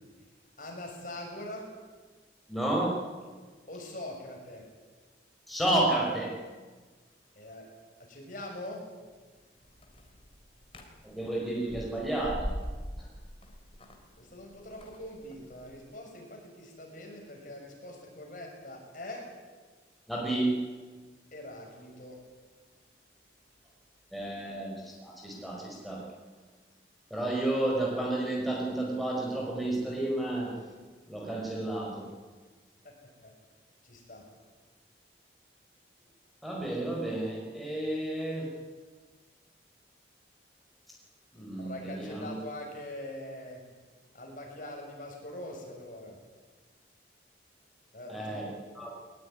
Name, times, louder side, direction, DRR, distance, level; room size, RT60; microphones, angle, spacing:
voice 1, 0.6-1.7 3.6-4.7 7.3-7.7 8.0-8.9 14.2-19.3 21.3-22.2 32.8-32.9 33.2-33.3 33.8-34.3 41.6-43.6 44.1-46.2 47.9-48.6, left 1 dB, 45° left, 1 dB, 6.6 m, -43 dB
voice 2, 2.5-3.0 5.5-6.4 11.0-12.5 13.0-13.1 20.1-20.6 24.1-26.1 27.1-30.6 31.1-32.1 36.4-38.5 41.3-42.3 48.1-48.5 48.8-48.9, right 1 dB, ahead, -3 dB, 5.0 m, -31 dB
sound 1, 9.6-15.8, equal, 30° left, 3.4 m, -42 dB
21.0 x 20.5 x 9.7 m, 1.4 s
head